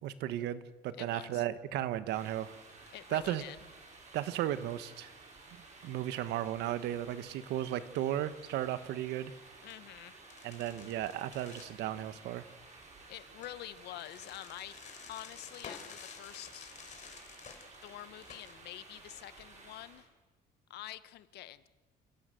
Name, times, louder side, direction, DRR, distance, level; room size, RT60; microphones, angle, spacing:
voice 1, 0.0-2.6 3.1-3.4 4.1-5.1 5.8-9.3 10.4-12.4, right 12 dB, 85° right, 13 dB, 1.5 m, -35 dB
voice 2, 1.0-1.4 2.9-3.6 9.6-10.2 13.1-14.8 15.1-16.7 17.8-20.1 20.7-21.7, left 14 dB, 75° left, 14 dB, 1.2 m, -47 dB
sound 1, 2.1-20.1, right 3 dB, 45° right, 6.8 m, -54 dB
sound 2, 9.2-9.3 9.7-9.8 10.2-11.7 13.2-18.5, left 6 dB, 45° left, 3.7 m, -51 dB
29.0 x 16.5 x 7.8 m, 1.3 s
cardioid pair, 110°, 17 cm